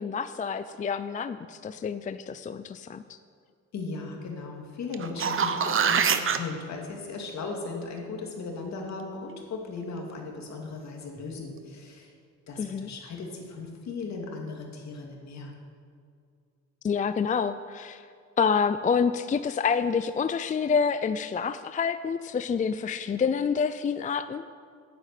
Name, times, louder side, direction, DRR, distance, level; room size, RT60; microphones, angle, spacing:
voice 1, 0.0-3.2 12.6-12.9 16.8-18.0 18.4-24.5, left 6 dB, 25° left, 12 dB, 0.4 m, -28 dB
voice 2, 3.7-12.1 12.5-15.5, left 4 dB, 65° left, 0 dB, 2.5 m, -37 dB
sound 1, 4.9-6.4 11.2-11.3, right 7 dB, 45° right, 0.8 m, -24 dB
10.0 x 8.1 x 8.5 m, 2.3 s
cardioid pair, 90°, 30 cm